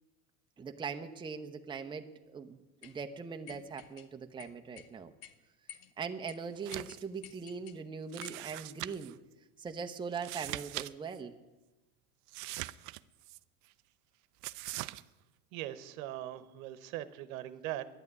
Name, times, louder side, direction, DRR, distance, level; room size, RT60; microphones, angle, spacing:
voice 1, 0.6-5.1 6.0-9.2 9.6-11.3, right 5 dB, 10° right, 5 dB, 0.7 m, -41 dB
sound 1, 2.8-3.0 3.5-4.1 4.4-4.9 5.2-5.3 5.7-5.9 6.3-6.4 6.7-7.8 8.2-8.4, left 9 dB, 70° left, 1.1 m, -51 dB
sound 2, 6.5-7.0 7.3-7.4 8.1-9.1 10.1-10.9 11.1-11.2 12.3-13.4 14.4-15.0, right 19 dB, 45° right, 0.4 m, -41 dB
voice 2, 15.5-17.9, right 13 dB, 70° right, 13 dB, 1.0 m, -40 dB
11.0 x 8.7 x 9.4 m, 1.1 s
supercardioid pair, 100°, 44 cm